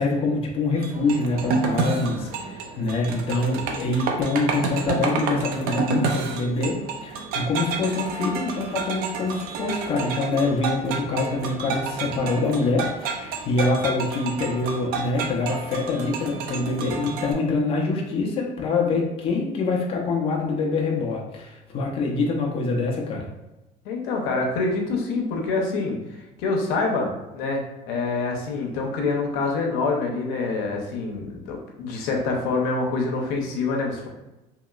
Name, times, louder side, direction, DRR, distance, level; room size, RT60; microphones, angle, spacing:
voice 1, 0.0-23.3, left 3 dB, 35° left, -1 dB, 0.6 m, -25 dB
sound 1, 0.8-17.3, right 4 dB, 65° right, 0.5 m, -30 dB
voice 2, 23.8-26.0 26.4-34.1, left 3 dB, 80° left, 1 dB, 0.7 m, -26 dB
2.9 x 2.9 x 2.3 m, 1.0 s
cardioid pair, 155°, 17 cm